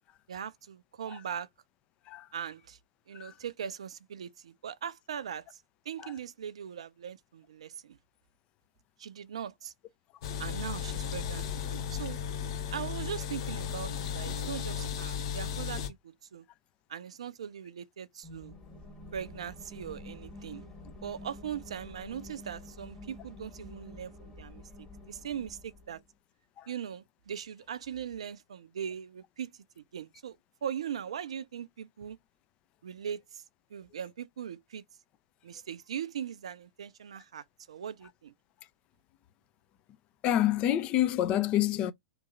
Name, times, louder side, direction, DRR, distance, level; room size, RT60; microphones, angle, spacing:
voice 1, 0.3-1.5 2.3-2.8 3.1-5.6 5.9-8.0 9.0-9.7 10.4-12.2 12.7-16.4 16.9-18.5 19.1-20.6 21.0-24.6 25.1-26.0 26.7-29.5 29.9-30.4 30.6-32.2 32.8-33.4 33.7-34.8 35.4-38.3, right 8 dB, 70° right, 0.4 m, -40 dB
sound 1, 10.2-15.9, left 8 dB, 55° left, 0.8 m, -35 dB
sound 2, 18.2-26.0, left 1 dB, 15° left, 1.5 m, -48 dB
voice 2, 40.2-41.9, left 12 dB, 35° left, 0.4 m, -27 dB
2.9 x 2.6 x 2.5 m
figure-of-eight pair, 100°, 3 cm